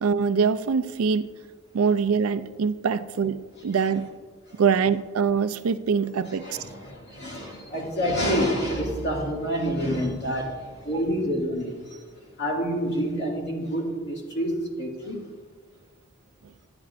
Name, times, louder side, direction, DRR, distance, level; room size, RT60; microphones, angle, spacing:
voice 1, 0.0-1.3 1.7-4.1 4.6-6.6, right 6 dB, 85° right, 12 dB, 0.4 m, -24 dB
voice 2, 6.3-12.1 12.4-15.2, equal, 50° left, -3 dB, 2.3 m, -28 dB
12.0 x 9.7 x 2.5 m, 1.5 s
head